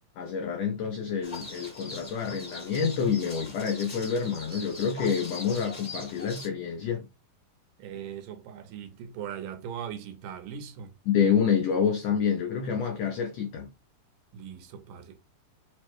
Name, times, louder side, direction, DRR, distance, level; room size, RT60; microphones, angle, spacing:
voice 1, 0.2-7.1 11.1-13.7, left 7 dB, 90° left, 1.5 m, -28 dB
sound 1, 1.2-6.5, left 2 dB, 40° left, 0.5 m, -42 dB
voice 2, 7.8-10.9 14.3-15.2, right 8 dB, 85° right, 2.5 m, -40 dB
5.3 x 2.1 x 4.5 m
omnidirectional pair, 3.8 m